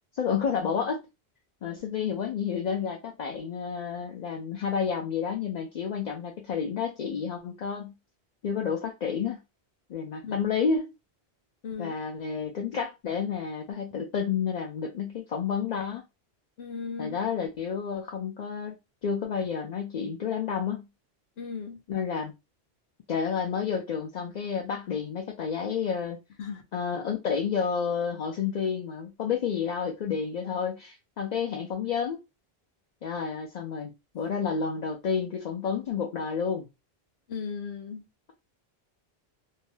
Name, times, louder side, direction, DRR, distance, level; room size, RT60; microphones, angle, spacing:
voice 1, 0.1-1.1 1.6-7.9 8.4-9.4 9.9-10.9 11.8-16.0 17.0-18.7 19.0-20.9 21.9-22.3 23.1-26.2 26.7-32.2 33.0-36.7, left 6 dB, 55° left, 0.5 m, -30 dB
voice 2, 11.6-11.9 16.6-17.2 21.4-21.8 26.4-26.6 37.3-38.1, left 5 dB, 75° left, 0.9 m, -36 dB
2.7 x 2.1 x 3.1 m
omnidirectional pair, 1.1 m